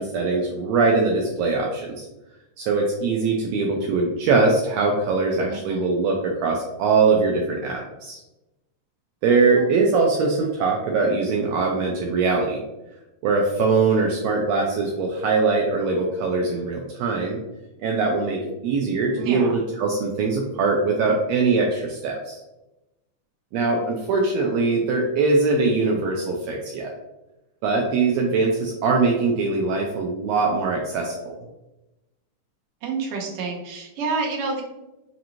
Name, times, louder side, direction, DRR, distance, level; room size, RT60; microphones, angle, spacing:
voice 1, 0.0-2.1 2.6-8.2 9.2-12.6 13.2-17.4 17.8-22.4 23.5-26.9 27.6-31.3, right 4 dB, 85° right, 0 dB, 1.5 m, -22 dB
voice 2, 5.5-6.0 9.6-9.7 19.1-19.6 23.7-23.8 32.8-34.6, right 4 dB, 70° right, -1 dB, 1.4 m, -29 dB
5.1 x 2.6 x 2.9 m, 0.98 s
omnidirectional pair, 3.5 m